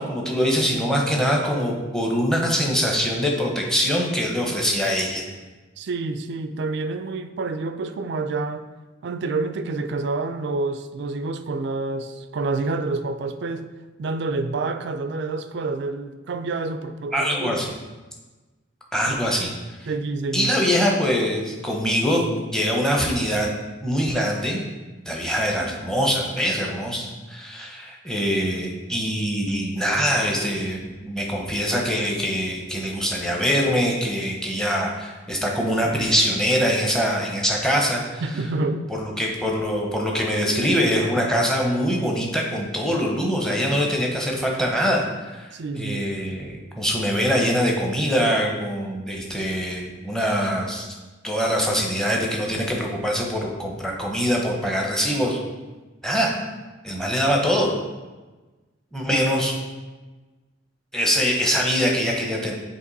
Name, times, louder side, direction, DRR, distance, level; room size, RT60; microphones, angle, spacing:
voice 1, 0.0-5.2 17.1-17.7 18.9-19.5 19.8-19.9 20.3-23.5 23.8-24.7 25.1-38.2 39.0-45.5 45.7-50.9 51.2-55.4 56.0-56.3 56.8-57.7 58.9-59.5 60.9-62.5, equal, 5° left, -1 dB, 0.8 m, -23 dB
voice 2, 5.8-8.7 9.0-13.7 14.0-17.6 19.1-19.3 19.9-20.5 38.2-38.9 45.5-46.1 59.1-59.2, right 3 dB, 60° right, 9 dB, 0.4 m, -28 dB
7.9 x 3.0 x 4.0 m, 1.2 s
head